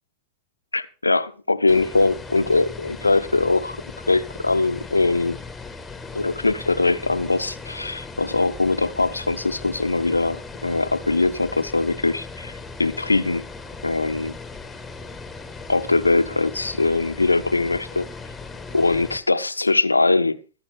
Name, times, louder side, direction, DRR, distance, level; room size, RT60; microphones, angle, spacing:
voice 1, 0.7-3.8 4.1-5.4 6.1-13.5 13.8-14.3 15.7-18.1 18.7-20.4, left 3 dB, 80° left, 0.7 m, -21 dB
sound 1, 1.7-19.2, left 3 dB, 10° left, 1.6 m, -38 dB
17.0 x 7.5 x 5.1 m
figure-of-eight pair, 90°, 0 cm